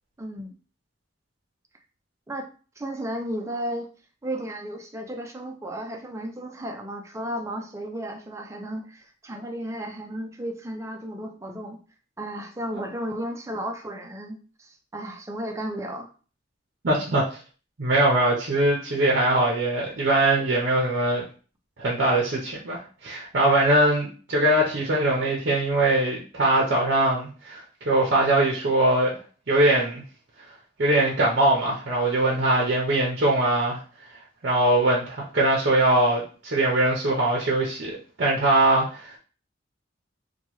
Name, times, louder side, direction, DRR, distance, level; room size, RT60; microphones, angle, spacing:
voice 1, 0.2-0.6 2.3-2.5 2.8-3.9 4.2-11.8 12.2-16.1, right 1 dB, 15° right, 3 dB, 0.4 m, -34 dB
voice 2, 16.8-17.2 17.8-21.2 21.8-29.1 29.5-30.0 30.8-33.8 34.4-39.2, right 1 dB, 55° right, -3 dB, 0.7 m, -22 dB
2.9 x 2.2 x 3.0 m, 0.38 s
head